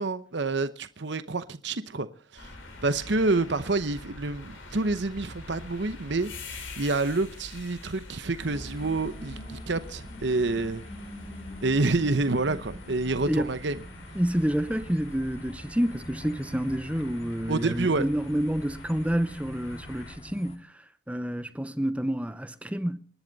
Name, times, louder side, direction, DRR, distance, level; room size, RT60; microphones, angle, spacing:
voice 1, 0.0-2.1 2.3-2.5 2.8-6.3 6.8-10.8 11.6-13.8 17.5-18.1, right 3 dB, 60° right, 0.9 m, -28 dB
sound 1, 2.4-20.2, left 2 dB, 75° left, 5.8 m, -45 dB
sound 2, 8.4-20.6, equal, 30° left, 2.0 m, -44 dB
voice 2, 14.1-23.0, equal, 5° right, 0.7 m, -29 dB
27.5 x 11.5 x 4.0 m
head